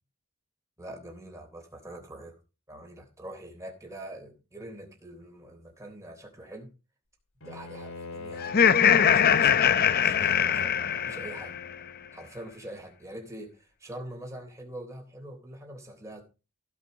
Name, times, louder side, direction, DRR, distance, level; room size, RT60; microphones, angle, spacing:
voice 1, 0.8-2.4 2.7-6.7 7.4-8.8 9.1-9.7 10.0-10.7 11.1-11.6 12.1-16.2, right 1 dB, 15° right, 2 dB, 3.4 m, -44 dB
Bowed string instrument, 7.4-12.3, left 4 dB, 80° left, 2.3 m, -43 dB
Laughter, 8.4-11.6, left 8 dB, 50° left, 0.7 m, -22 dB
15.5 x 5.8 x 5.1 m, 0.32 s
head